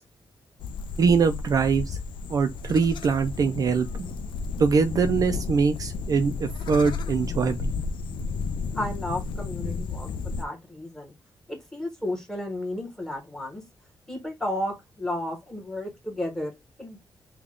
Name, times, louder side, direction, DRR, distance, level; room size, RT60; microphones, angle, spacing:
sound 1, 0.6-10.4, left 4 dB, 85° left, 0.4 m, -32 dB
voice 1, 1.0-2.0 2.3-3.9 4.6-7.7, right 5 dB, 50° right, 0.4 m, -23 dB
voice 2, 8.7-11.1 11.5-13.6 14.1-16.5 16.8-17.0, left 1 dB, 5° left, 1.1 m, -33 dB
3.6 x 2.3 x 3.5 m
wide cardioid pair, 170°, 8 cm